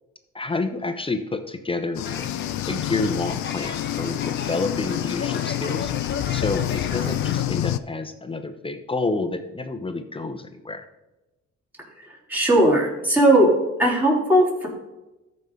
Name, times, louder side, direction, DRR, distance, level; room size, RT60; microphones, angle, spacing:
voice 1, 0.3-2.3 2.7-5.9 6.3-10.8, left 3 dB, 20° left, 7 dB, 0.8 m, -29 dB
sound 1, 1.9-7.8, left 13 dB, 70° left, 0.5 m, -27 dB
sound 2, 2.0-7.4, left 5 dB, 35° left, 1.2 m, -36 dB
voice 2, 12.0-13.5 13.8-14.7, right 1 dB, 5° right, -5 dB, 3.6 m, -18 dB
13.5 x 5.4 x 3.7 m, 1.0 s
cardioid pair, 90°, 30 cm